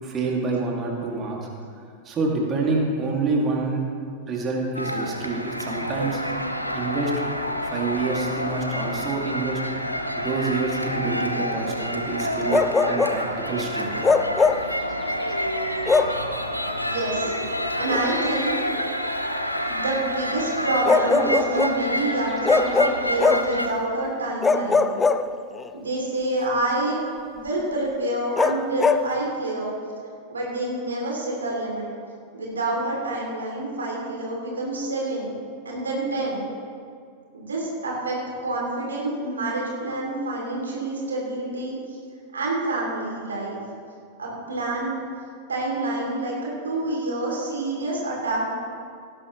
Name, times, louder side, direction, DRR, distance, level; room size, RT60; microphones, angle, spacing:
voice 1, 0.0-1.5 2.0-3.8 4.3-6.2 6.7-7.1 7.6-9.6 10.2-13.9, right 3 dB, 25° right, -1 dB, 2.4 m, -27 dB
sound 1, 4.7-23.7, equal, 90° left, 0.8 m, -28 dB
Bark, 12.5-13.2 14.0-14.7 15.9-16.2 17.9-18.1 20.9-21.8 22.5-23.6 24.4-25.7 28.4-29.1, left 4 dB, 15° left, 0.5 m, -21 dB
voice 2, 16.8-17.3 17.8-18.5 19.7-24.9 25.7-27.0 27.3-29.7 30.3-31.9 32.3-35.3 35.6-36.5 37.3-42.0 42.3-43.6 44.2-45.0 45.5-48.6, right 2 dB, 70° right, -3 dB, 3.0 m, -27 dB
18.0 x 11.5 x 3.2 m, 2.3 s
figure-of-eight pair, 90°, 0 cm